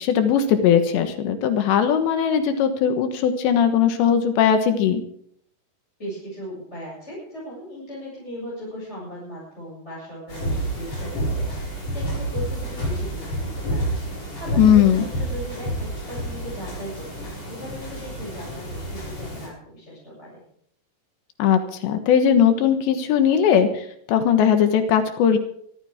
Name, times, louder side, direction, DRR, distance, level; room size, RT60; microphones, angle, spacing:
voice 1, 0.0-5.0 14.6-15.1 21.4-25.4, left 8 dB, 85° left, 7 dB, 3.6 m, -19 dB
voice 2, 6.0-13.9 14.4-20.4, equal, 15° left, -7 dB, 8.0 m, -38 dB
sound 1, 10.3-19.5, right 1 dB, 35° left, 8.6 m, -29 dB
24.0 x 14.0 x 3.7 m, 0.66 s
omnidirectional pair, 4.9 m